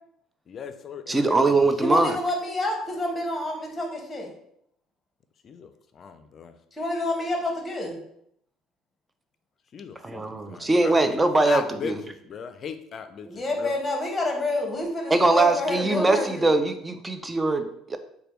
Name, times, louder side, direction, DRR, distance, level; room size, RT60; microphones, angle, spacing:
voice 1, 0.5-1.7 5.4-6.6 9.7-10.2 10.5-11.2 11.4-13.8, left 7 dB, 45° left, 9 dB, 0.4 m, -38 dB
voice 2, 1.1-2.2 10.0-12.0 15.1-18.0, right 2 dB, 15° right, 9 dB, 0.4 m, -22 dB
voice 3, 1.8-4.3 6.7-8.0 13.2-16.5, left 1 dB, 20° left, 2 dB, 1.0 m, -28 dB
3.3 x 2.2 x 4.3 m, 0.72 s
supercardioid pair, 100°, 0 cm